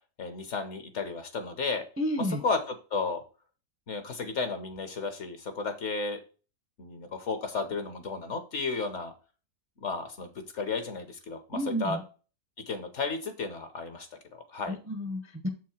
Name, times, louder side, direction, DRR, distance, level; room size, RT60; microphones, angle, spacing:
voice 1, 0.2-1.8 2.2-3.2 3.9-6.2 6.8-9.1 9.8-10.3 10.5-12.0 12.7-14.8, left 4 dB, 50° left, 8 dB, 1.1 m, -33 dB
voice 2, 2.0-2.4 11.5-12.0 14.7-15.5, equal, 15° right, 5 dB, 0.6 m, -31 dB
7.2 x 4.6 x 4.3 m, 0.35 s
omnidirectional pair, 1.7 m